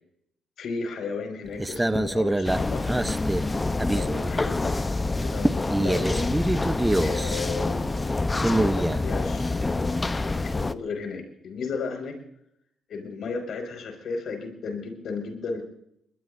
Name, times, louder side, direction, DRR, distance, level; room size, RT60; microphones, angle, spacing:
voice 1, 0.6-2.9 3.9-6.2 7.0-12.2 12.9-15.6, left 4 dB, 65° left, 4 dB, 5.7 m, -34 dB
sound 1, 1.5-4.8 5.0-9.3, right 1 dB, 10° right, 0.8 m, -26 dB
sound 2, 2.4-10.7, left 2 dB, 20° left, 0.8 m, -27 dB
23.0 x 21.0 x 2.7 m, 0.75 s
cardioid pair, 90°, 0 cm